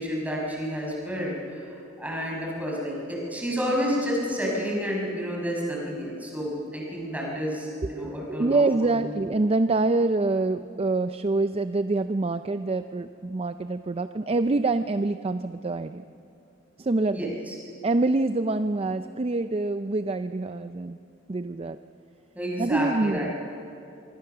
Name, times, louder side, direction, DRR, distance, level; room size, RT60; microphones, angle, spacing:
voice 1, 0.0-9.1 17.1-17.5 22.3-23.3, equal, 10° right, -2 dB, 5.8 m, -30 dB
voice 2, 8.0-16.0 16.8-17.3 17.8-21.0 21.3-21.8 22.6-23.3, right 2 dB, 30° right, 10 dB, 0.5 m, -26 dB
25.0 x 23.5 x 6.8 m, 2.6 s
head